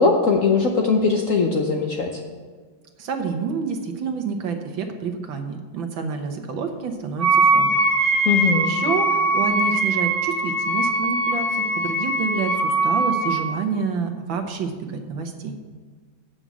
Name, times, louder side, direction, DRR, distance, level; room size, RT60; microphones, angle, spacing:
voice 1, 0.0-2.1 8.2-8.7, left 4 dB, 60° left, 2 dB, 0.9 m, -20 dB
voice 2, 3.0-7.8 8.1-15.6, right 5 dB, 70° right, 5 dB, 1.7 m, -28 dB
Wind instrument woodwind instrument, 7.2-13.5, right 2 dB, 30° right, 1.5 m, -21 dB
7.8 x 6.2 x 8.0 m, 1.5 s
omnidirectional pair, 2.2 m